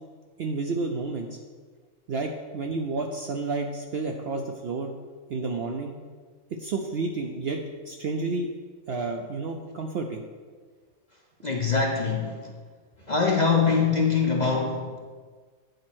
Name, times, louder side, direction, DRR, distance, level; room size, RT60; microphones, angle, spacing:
voice 1, 0.4-1.3 2.1-4.9 5.3-5.9 6.6-7.6 7.9-8.5 8.9-10.2, right 3 dB, 60° right, 3 dB, 0.6 m, -30 dB
voice 2, 11.4-12.5 13.0-15.0, left 5 dB, 45° left, 0 dB, 0.6 m, -23 dB
9.3 x 4.2 x 6.1 m, 1.5 s
omnidirectional pair, 1.5 m